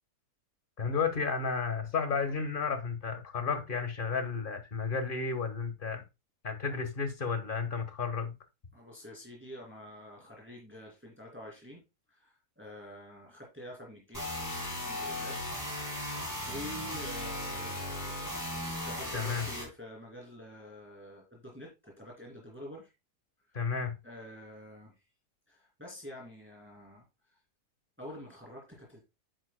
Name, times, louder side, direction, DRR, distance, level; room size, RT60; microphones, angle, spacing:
voice 1, 0.8-6.0 6.4-8.3 19.1-19.5 23.5-23.9, left 5 dB, 35° left, 1.4 m, -32 dB
voice 2, 8.7-11.8 12.1-14.5 14.8-15.4 15.8-18.3 18.8-22.9 24.0-25.0 25.5-27.1 28.0-29.0, equal, 5° right, 2.6 m, -47 dB
sound 1, 14.1-19.6, left 1 dB, 10° left, 3.6 m, -37 dB
9.9 x 7.8 x 2.2 m
omnidirectional pair, 1.7 m